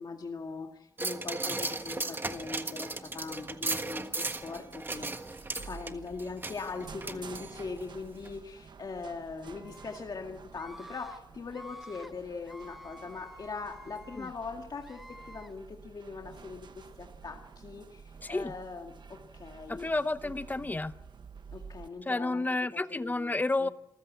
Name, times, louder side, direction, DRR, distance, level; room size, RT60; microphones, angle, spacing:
voice 1, 0.0-5.1 5.5-19.9 20.2-20.3 21.5-22.4 22.7-23.3 23.6-23.7, left 4 dB, 60° left, 2 dB, 2.0 m, -41 dB
sound 1, 1.0-7.9 8.3-8.4, right 2 dB, 25° right, 1.5 m, -36 dB
sound 2, 4.3-21.9, right 5 dB, 75° right, 1.2 m, -51 dB
Screaming, 9.4-10.0 10.5-11.2 11.5-12.1 12.4-14.3 14.8-15.5, equal, ahead, 1.2 m, -50 dB
voice 2, 18.2-18.5 19.7-21.0 22.0-23.7, left 2 dB, 20° left, 13 dB, 0.8 m, -31 dB
27.5 x 15.0 x 8.5 m, 0.87 s
wide cardioid pair, 125°, 8 cm